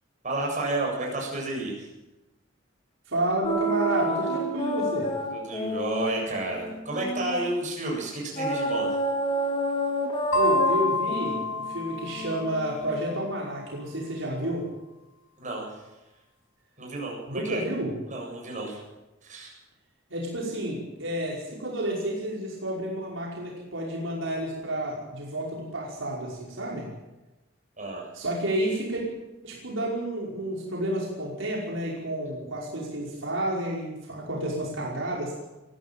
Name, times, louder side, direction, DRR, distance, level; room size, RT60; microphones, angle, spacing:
voice 1, 0.2-1.9 5.3-9.0 15.4-15.8 16.8-17.6 18.1-18.8 19.2-19.6 27.8-28.1, right 2 dB, 40° right, -1 dB, 7.8 m, -31 dB
voice 2, 3.1-5.1 10.3-14.7 17.3-17.9 20.1-26.9 28.1-29.0 29.4-35.3, right 1 dB, 75° right, -3 dB, 5.4 m, -30 dB
sound 1, 3.4-7.6 8.4-13.1, right 1 dB, 25° left, 2.9 m, -29 dB
sound 2, 10.3-12.8, left 2 dB, 90° left, 5.6 m, -28 dB
21.5 x 15.5 x 9.0 m, 1.1 s
head